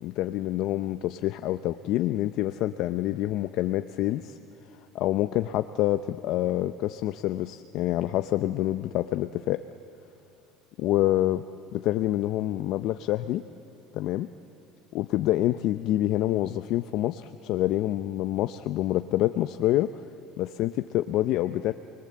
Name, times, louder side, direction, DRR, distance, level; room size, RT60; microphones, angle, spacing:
voice 1, 0.0-4.4 4.9-9.6 10.8-11.4 11.7-13.4 13.9-14.3 14.9-19.9 20.4-21.7, left 14 dB, 60° left, 10 dB, 0.6 m, -27 dB
28.5 x 21.5 x 7.7 m, 2.8 s
cardioid pair, 135°, 0 cm